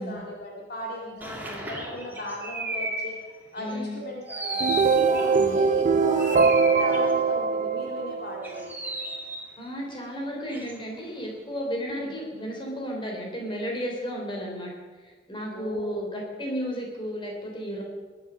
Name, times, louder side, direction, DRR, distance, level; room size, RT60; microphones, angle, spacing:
voice 1, 0.0-3.2 3.5-6.4 6.8-8.8 11.9-12.1 15.5-16.0, left 1 dB, 55° left, -2 dB, 2.2 m, -36 dB
sound 1, 1.2-3.1 3.6-3.8 4.3-5.5 6.2-7.1 8.4-9.5 10.5-11.0, right 1 dB, 10° right, 2.3 m, -34 dB
voice 2, 3.6-4.0 5.3-5.6 9.6-14.7 15.0-17.8, equal, 30° left, -1 dB, 3.7 m, -33 dB
sound 2, 4.4-8.7, right 5 dB, 45° right, 0.5 m, -23 dB
20.5 x 8.0 x 6.4 m, 1.4 s
head